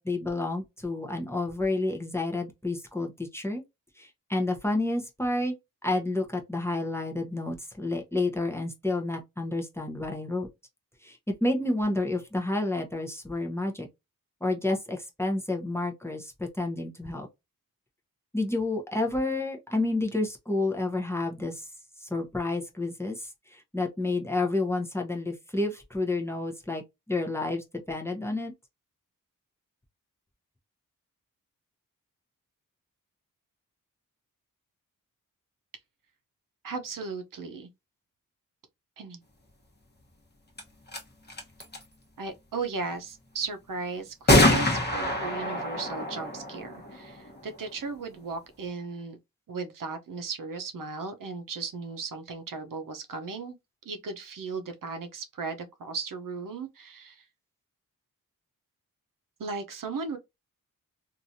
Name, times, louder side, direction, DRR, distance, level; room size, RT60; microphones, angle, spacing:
voice 1, 0.0-3.6 4.0-5.5 5.8-10.5 11.0-13.9 14.4-17.3 18.3-21.7 22.0-26.8 27.1-28.5, left 2 dB, 10° left, 0.7 m, -30 dB
voice 2, 36.6-37.7 39.0-39.2 42.2-49.2 49.5-53.6 53.8-57.3 59.4-60.2, right 4 dB, 70° right, 0.7 m, -36 dB
sound 1, 40.6-40.7 40.9-41.0 41.3-41.8 44.3-47.7, left 1 dB, 30° left, 1.0 m, -25 dB
3.1 x 2.6 x 2.6 m
wide cardioid pair, 100°, 34 cm